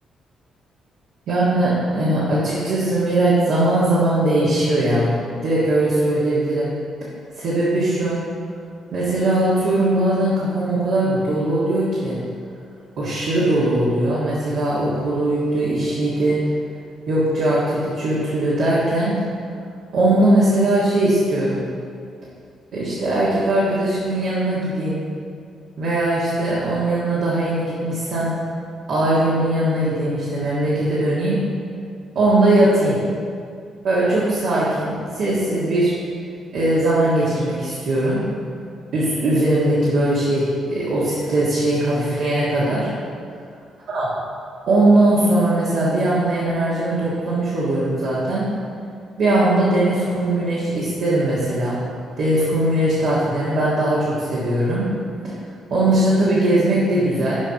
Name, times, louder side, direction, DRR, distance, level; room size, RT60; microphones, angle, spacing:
voice 1, 1.3-6.7 7.4-8.2 8.9-12.2 13.0-16.4 17.1-19.2 19.9-21.6 22.7-25.0 25.8-28.3 28.9-31.4 32.1-33.0 33.8-35.9 36.5-38.2 38.9-42.9 43.9-44.1 44.7-48.5 49.2-51.8 52.2-54.9 55.7-57.4, right 1 dB, 70° right, -8 dB, 1.6 m, -20 dB
6.9 x 4.2 x 5.8 m, 2.3 s
cardioid pair, 90°, 0 cm